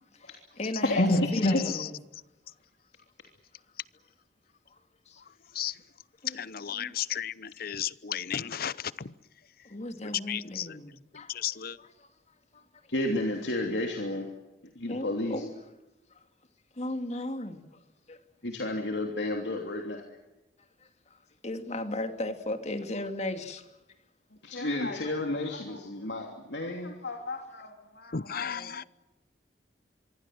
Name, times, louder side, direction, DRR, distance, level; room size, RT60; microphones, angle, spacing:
voice 1, 0.2-1.1 1.3-2.0 5.1-5.2 6.2-6.4 6.7-6.9 9.6-11.3 11.8-12.1 12.5-12.6 14.9-15.5 16.8-17.6 18.1-18.2 21.1-21.2 21.4-23.7, left 1 dB, 40° left, 2.5 m, -36 dB
voice 2, 0.8-1.6 12.9-14.3 14.7-15.4 18.4-20.0 24.4-28.7, left 1 dB, 75° left, 3.1 m, -30 dB
voice 3, 6.4-9.1 10.0-10.8 11.1-11.8 28.1-28.8, left 9 dB, 55° left, 0.8 m, -34 dB
25.5 x 23.0 x 7.8 m
head